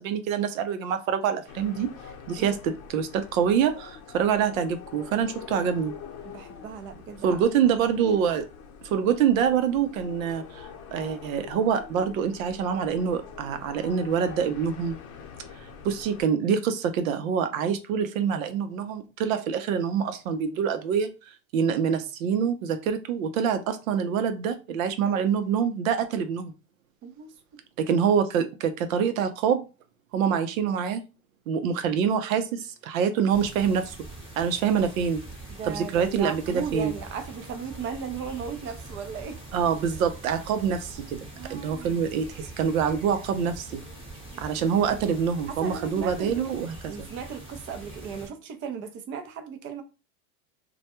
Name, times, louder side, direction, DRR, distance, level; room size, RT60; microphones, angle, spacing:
voice 1, 0.0-1.9 2.3-5.9 7.2-8.5 8.8-15.0 15.8-26.5 27.8-29.7 30.1-31.0 31.5-34.0 34.4-35.2 35.7-36.9 39.5-41.2 41.5-43.8 44.4-47.1, right 7 dB, 70° right, 0.6 m, -26 dB
sound 1, 1.5-16.2, left 7 dB, 45° left, 0.8 m, -44 dB
voice 2, 6.2-7.4 27.0-27.3 35.5-39.4 41.4-42.0 44.4-44.5 45.5-46.4 46.9-49.8, right 6 dB, 30° right, 0.5 m, -36 dB
sound 2, 33.3-48.3, right 2 dB, 15° right, 0.9 m, -43 dB
2.2 x 2.2 x 2.8 m
hypercardioid pair, 115°, 41 cm